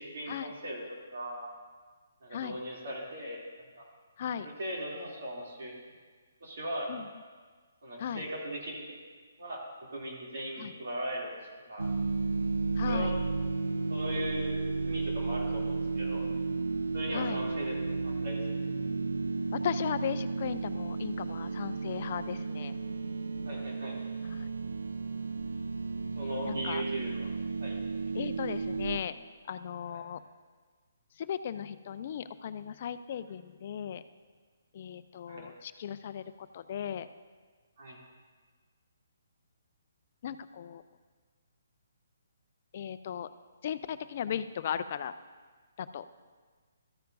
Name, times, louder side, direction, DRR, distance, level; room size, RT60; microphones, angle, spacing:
voice 1, 0.0-1.5 2.2-3.4 3.8-3.9 4.4-5.8 6.4-6.9 7.8-9.0 9.4-11.3 11.7-11.9 12.8-13.1 13.9-16.3 16.9-17.7 18.0-18.4 23.4-24.0 26.2-27.3 27.6-27.8 29.9-30.0 35.3-35.5 37.8-38.0, equal, 60° right, -3 dB, 2.7 m, -38 dB
voice 2, 4.2-4.5 6.9-7.1 8.0-8.2 10.6-10.7 12.8-13.1 17.1-17.4 19.5-22.7 24.3-24.5 26.4-26.8 28.1-29.1 29.5-30.2 31.2-34.0 34.7-37.1 40.2-40.8 42.7-43.3 43.6-45.1 45.8-46.1, left 9 dB, 45° left, 12 dB, 0.4 m, -37 dB
sound 1, 11.8-29.0, right 3 dB, 80° right, 0.5 m, -33 dB
13.5 x 9.2 x 2.6 m, 1.5 s
figure-of-eight pair, 140°, 0 cm